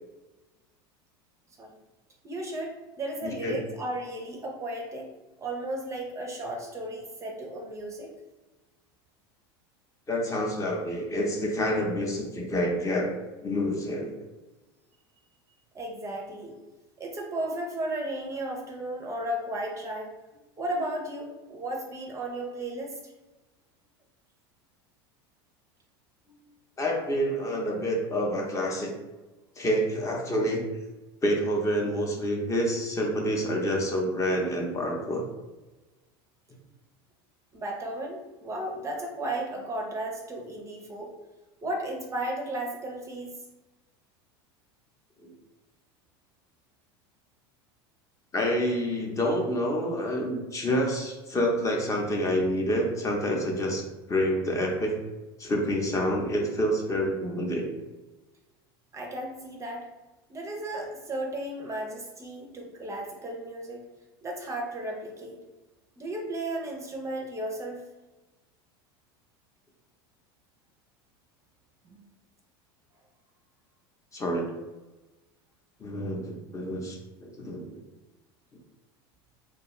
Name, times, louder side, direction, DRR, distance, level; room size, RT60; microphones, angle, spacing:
voice 1, 2.2-5.1 5.4-8.1 15.7-16.5 17.0-20.2 20.6-23.1 26.3-26.4 37.5-41.1 41.6-43.3 58.9-59.9 60.3-63.8 64.2-65.4 66.0-67.8 71.9-72.0, right 1 dB, 25° right, 1 dB, 0.5 m, -34 dB
voice 2, 3.2-3.6 10.1-13.1 13.4-14.1 26.8-28.9 29.6-30.6 31.2-35.2 45.2-45.3 48.3-53.8 54.1-54.9 55.4-57.7 74.1-74.5 75.8-77.6, equal, 25° left, 0 dB, 0.6 m, -28 dB
2.5 x 2.2 x 3.0 m, 1.1 s
hypercardioid pair, 100°, 13 cm